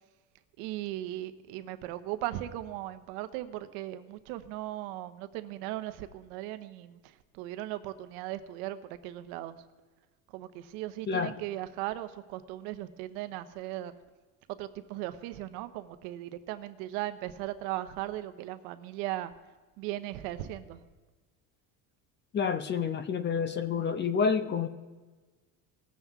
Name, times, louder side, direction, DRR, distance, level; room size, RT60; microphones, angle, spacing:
voice 1, 0.6-9.6 10.3-13.9 14.6-19.3 19.8-20.8, right 14 dB, 80° right, 11 dB, 0.9 m, -38 dB
voice 2, 22.3-24.7, left 6 dB, 30° left, 11 dB, 0.6 m, -28 dB
18.5 x 7.4 x 3.5 m, 1.3 s
cardioid pair, 130°, 38 cm